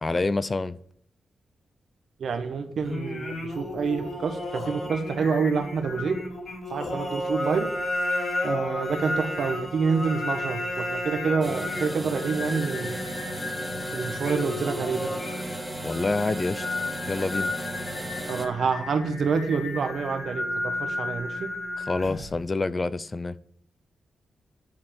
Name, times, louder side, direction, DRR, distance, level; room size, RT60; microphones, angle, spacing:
voice 1, 0.0-0.8 15.8-16.7 17.1-17.5 21.8-23.3, left 3 dB, 30° left, 0.5 m, -27 dB
voice 2, 2.2-6.2 6.7-7.7 8.4-12.9 13.9-15.1 18.3-21.5, right 5 dB, 70° right, 1.5 m, -27 dB
Singing, 2.8-22.4, left 2 dB, 45° left, 5.1 m, -33 dB
sound 1, 11.4-18.5, right 1 dB, ahead, 2.1 m, -35 dB
11.0 x 4.4 x 7.8 m
cardioid pair, 85°, 0 cm